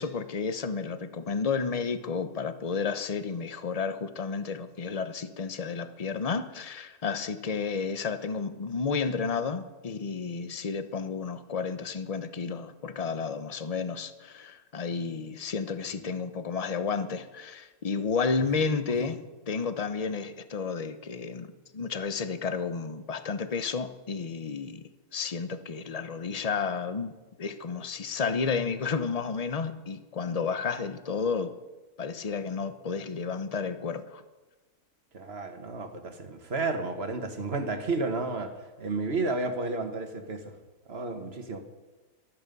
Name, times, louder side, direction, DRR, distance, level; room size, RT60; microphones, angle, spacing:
voice 1, 0.0-24.8 25.1-31.5 32.0-34.2, left 5 dB, 30° left, 11 dB, 0.7 m, -32 dB
voice 2, 35.1-38.5 38.8-40.5 40.9-41.6, right 3 dB, 40° right, 6 dB, 1.8 m, -32 dB
18.5 x 13.5 x 5.4 m, 1.2 s
omnidirectional pair, 1.6 m